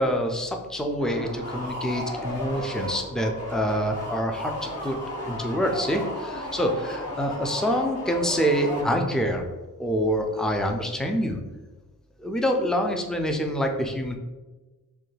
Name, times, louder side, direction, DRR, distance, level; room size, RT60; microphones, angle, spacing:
voice 1, 0.0-5.0 5.2-9.4 9.8-11.4 12.2-14.1, equal, ahead, 3 dB, 0.4 m, -26 dB
sound 1, 1.0-9.3, left 1 dB, 45° left, 1.0 m, -34 dB
3.2 x 2.2 x 3.2 m, 1.2 s
cardioid pair, 60°, 35 cm